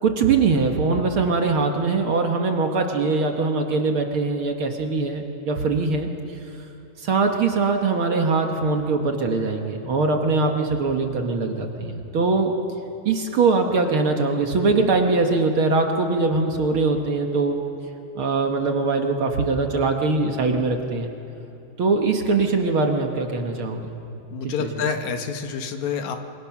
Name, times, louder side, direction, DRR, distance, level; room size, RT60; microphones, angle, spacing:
voice 1, 0.0-6.1 7.0-12.5 13.1-17.6 18.2-21.1 21.8-24.0 24.4-24.7, right 3 dB, 55° right, 3 dB, 1.9 m, -22 dB
voice 2, 24.3-26.2, left 6 dB, 75° left, 6 dB, 2.6 m, -28 dB
28.0 x 24.5 x 6.0 m, 2.9 s
omnidirectional pair, 3.4 m